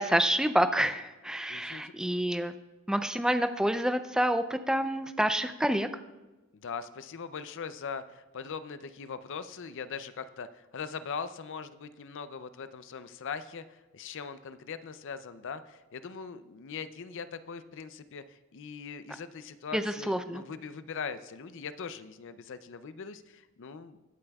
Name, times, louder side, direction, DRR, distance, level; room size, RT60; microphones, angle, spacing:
voice 1, 0.0-2.5 2.9-5.9 19.7-20.4, right 1 dB, 5° right, 9 dB, 0.4 m, -28 dB
voice 2, 1.5-2.1 6.5-24.0, left 6 dB, 55° left, 12 dB, 0.5 m, -41 dB
21.5 x 8.6 x 2.3 m, 1.1 s
head